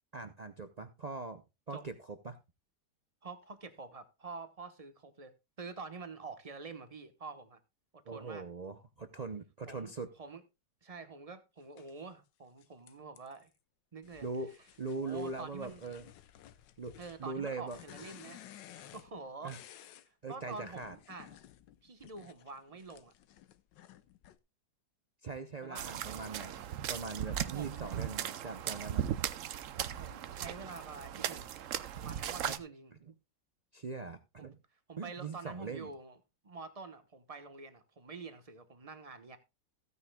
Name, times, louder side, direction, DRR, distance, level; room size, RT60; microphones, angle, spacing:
voice 1, 0.1-1.4 1.7-2.4 8.1-10.1 14.2-14.5 14.8-16.1 16.8-17.8 19.4-19.6 20.2-21.0 25.2-29.0 32.5-32.6 33.7-34.6 35.0-35.9, right 3 dB, 80° right, 0.3 m, -41 dB
voice 2, 3.2-7.6 7.9-8.4 9.7-9.9 10.2-10.4 10.8-13.5 13.9-14.3 14.9-15.8 17.0-21.4 21.8-23.1 25.6-26.2 27.5-28.0 29.9-31.5 32.0-32.9 34.4-34.5 34.9-36.2 36.4-39.4, right 4 dB, 25° right, 1.0 m, -47 dB
sound 1, 11.8-11.9 12.6-13.5 14.0-20.1 20.5-24.4, left 12 dB, 85° left, 1.4 m, -55 dB
sound 2, 25.7-32.6, right 10 dB, 60° right, 0.8 m, -38 dB
15.5 x 9.6 x 2.3 m
omnidirectional pair, 1.9 m